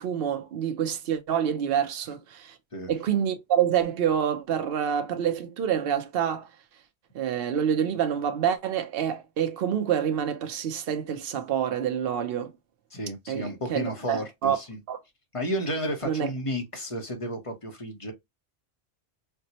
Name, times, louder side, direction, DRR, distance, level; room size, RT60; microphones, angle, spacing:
voice 1, 0.0-2.6 2.9-6.5 7.1-12.5 13.3-14.6 14.9-15.0 16.0-16.3, right 9 dB, 60° right, 0.8 m, -27 dB
voice 2, 12.9-14.8 15.3-18.1, equal, 30° left, 0.8 m, -32 dB
4.3 x 2.1 x 2.7 m
omnidirectional pair, 1.2 m